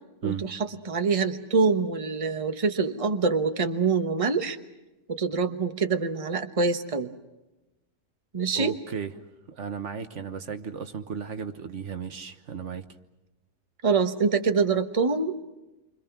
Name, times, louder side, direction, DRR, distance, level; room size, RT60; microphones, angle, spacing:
voice 1, 0.2-4.6 5.1-7.1 8.3-8.7 13.8-15.4, right 4 dB, 30° right, 7 dB, 1.3 m, -25 dB
voice 2, 8.5-9.1 9.5-12.9, right 6 dB, 70° right, 8 dB, 1.5 m, -34 dB
29.0 x 25.5 x 6.1 m, 1.0 s
omnidirectional pair, 1.3 m